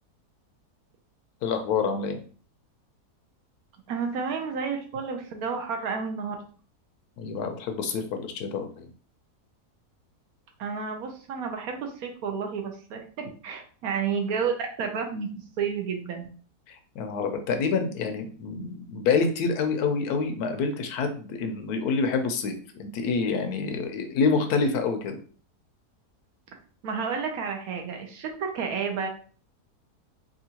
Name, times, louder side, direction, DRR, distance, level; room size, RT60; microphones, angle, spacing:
voice 1, 1.4-2.2 7.2-8.9 16.7-25.2, left 5 dB, 75° left, 6 dB, 1.1 m, -27 dB
voice 2, 3.9-6.4 10.6-15.3 15.6-16.3 26.8-29.1, right 6 dB, 70° right, 3 dB, 1.1 m, -31 dB
3.7 x 2.5 x 2.8 m, 0.41 s
omnidirectional pair, 1.7 m